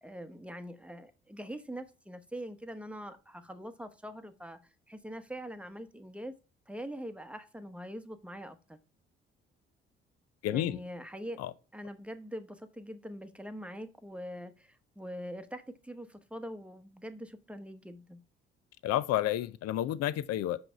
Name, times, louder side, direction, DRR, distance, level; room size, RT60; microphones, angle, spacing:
voice 1, 0.0-4.6 4.9-6.4 6.7-8.8 10.4-11.4 11.7-18.2, equal, 5° right, 0.9 m, -43 dB
voice 2, 10.4-10.8 11.4-11.5 18.8-20.6, left 13 dB, 55° left, 0.5 m, -30 dB
6.0 x 5.2 x 4.5 m
hypercardioid pair, 45°, 30 cm